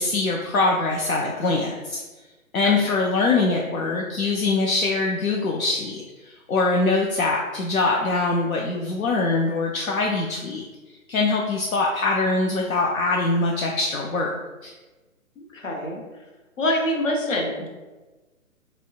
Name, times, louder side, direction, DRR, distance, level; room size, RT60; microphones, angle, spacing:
voice 1, 0.0-2.0 2.5-10.6 11.1-14.3 14.6-14.7, left 3 dB, 75° left, -1 dB, 0.6 m, -23 dB
voice 2, 2.6-3.0 15.4-16.0 16.6-17.7, left 1 dB, 60° left, 0 dB, 0.9 m, -26 dB
4.9 x 2.2 x 2.4 m, 1.2 s
figure-of-eight pair, 140°, 42 cm